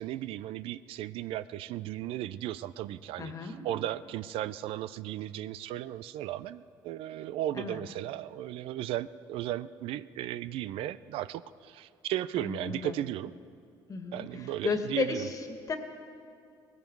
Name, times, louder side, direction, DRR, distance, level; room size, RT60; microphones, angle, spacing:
voice 1, 0.0-13.3 14.1-15.3, right 13 dB, 75° right, 16 dB, 0.4 m, -36 dB
voice 2, 3.2-3.6 7.5-7.8 12.4-13.0 13.9-14.2 14.6-15.8, left 4 dB, 35° left, 6 dB, 1.8 m, -33 dB
19.0 x 15.5 x 4.6 m, 2.4 s
supercardioid pair, 90°, 10 cm